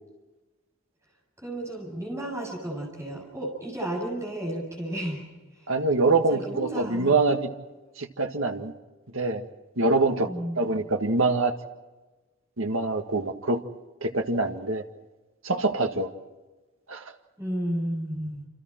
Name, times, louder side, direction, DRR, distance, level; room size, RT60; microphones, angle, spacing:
voice 1, 1.4-5.3 5.5-5.7 6.3-7.2 10.2-10.6 17.4-18.5, right 1 dB, 15° right, -1 dB, 7.9 m, -33 dB
voice 2, 5.7-7.5 8.0-8.7 9.1-9.5 9.8-10.3 10.6-11.6 12.6-13.6 14.0-14.8 15.4-16.1 16.9-17.1, right 3 dB, 75° right, 5 dB, 1.8 m, -24 dB
29.0 x 27.0 x 4.5 m, 1.2 s
head